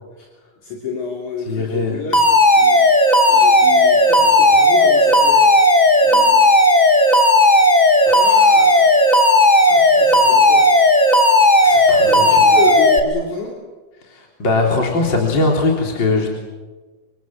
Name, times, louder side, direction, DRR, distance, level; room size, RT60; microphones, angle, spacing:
voice 1, 0.6-2.2 2.6-2.8 3.3-6.5 8.0-10.7 12.0-13.6, left 4 dB, 60° left, 0 dB, 4.4 m, -30 dB
voice 2, 1.5-2.0 11.6-12.4 14.1-16.3, left 3 dB, 35° left, 0 dB, 4.0 m, -20 dB
Alarm, 2.1-13.0, left 1 dB, 15° left, 1.5 m, -13 dB
28.0 x 24.5 x 7.6 m, 1.3 s
omnidirectional pair, 3.8 m